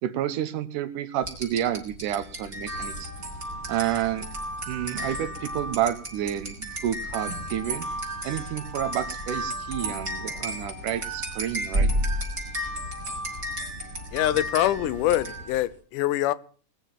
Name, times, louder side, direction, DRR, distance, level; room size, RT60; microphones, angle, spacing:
voice 1, 0.0-3.1 3.7-4.3 4.7-7.9 8.2-11.9, right 11 dB, 85° right, 2.5 m, -30 dB
sound 1, 1.2-15.7, right 1 dB, 25° right, 5.6 m, -32 dB
voice 2, 14.1-16.3, left 13 dB, 85° left, 2.4 m, -24 dB
20.5 x 7.3 x 7.3 m
omnidirectional pair, 3.6 m